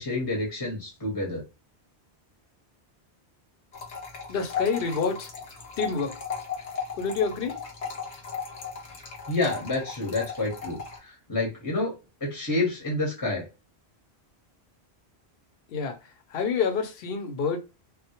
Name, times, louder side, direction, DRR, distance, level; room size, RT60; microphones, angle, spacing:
voice 1, 0.0-1.4 9.3-11.9 12.2-13.4, left 2 dB, 20° left, 0.8 m, -29 dB
sound 1, 3.7-11.0, left 6 dB, 85° left, 1.1 m, -36 dB
voice 2, 4.3-5.3 5.8-6.2 7.0-7.6 15.7-17.6, left 5 dB, 65° left, 0.8 m, -28 dB
2.1 x 2.1 x 2.8 m
omnidirectional pair, 1.1 m